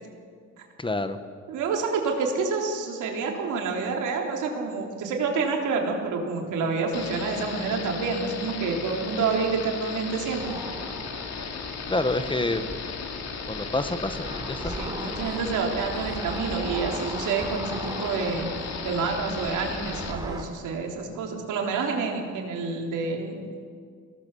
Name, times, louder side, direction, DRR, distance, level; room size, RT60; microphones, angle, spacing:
voice 1, 0.8-1.2 11.9-12.6 13.5-14.8, left 2 dB, 15° left, 10 dB, 1.3 m, -27 dB
voice 2, 1.5-10.5 12.4-12.5 14.8-18.5 18.8-23.4, right 4 dB, 80° right, 1 dB, 3.7 m, -28 dB
sound 1, 6.9-20.1, left 6 dB, 60° left, 2.4 m, -36 dB
sound 2, 10.4-20.4, right 1 dB, 15° right, 3.2 m, -38 dB
23.0 x 18.0 x 7.0 m, 2.1 s
cardioid pair, 90°, 30 cm